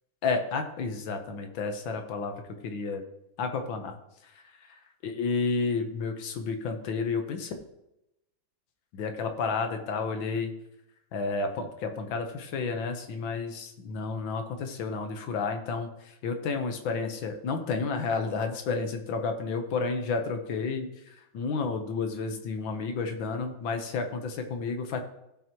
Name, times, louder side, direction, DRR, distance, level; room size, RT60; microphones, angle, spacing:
voice 1, 0.2-2.4 2.6-3.0 3.4-3.9 5.0-7.5 8.9-10.5 11.1-20.9 21.3-25.0, left 4 dB, 85° left, 5 dB, 1.8 m, -31 dB
15.5 x 5.9 x 3.0 m, 0.86 s
omnidirectional pair, 2.1 m